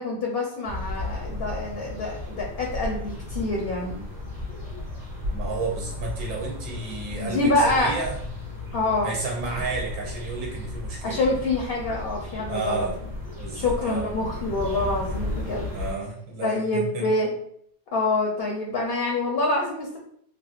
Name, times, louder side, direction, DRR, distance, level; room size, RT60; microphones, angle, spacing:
voice 1, 0.0-4.0 7.2-7.9 8.7-9.1 11.0-12.9 13.5-15.7 16.4-17.3 17.9-20.0, left 2 dB, 60° left, -1 dB, 0.7 m, -26 dB
sound 1, 0.6-15.9, left 2 dB, 30° right, 1.0 m, -34 dB
voice 2, 5.3-8.2 9.0-11.2 12.5-12.9 13.4-14.1 15.7-17.1, right 4 dB, 80° right, -1 dB, 1.0 m, -32 dB
3.3 x 2.4 x 2.4 m, 0.67 s
omnidirectional pair, 1.4 m